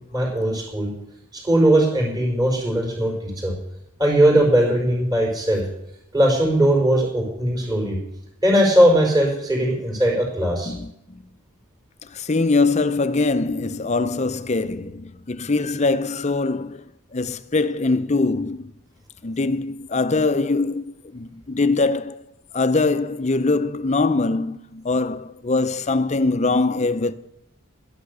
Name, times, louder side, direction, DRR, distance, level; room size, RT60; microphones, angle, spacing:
voice 1, 0.1-0.9 1.3-3.5 4.0-5.6 6.1-8.0 8.4-10.7, right 1 dB, 20° right, 4.8 m, -19 dB
voice 2, 10.7-11.2 12.0-16.8 17.1-18.7 19.2-22.3 22.5-27.1, left 3 dB, 35° left, 0.6 m, -22 dB
12.5 x 11.5 x 6.7 m
head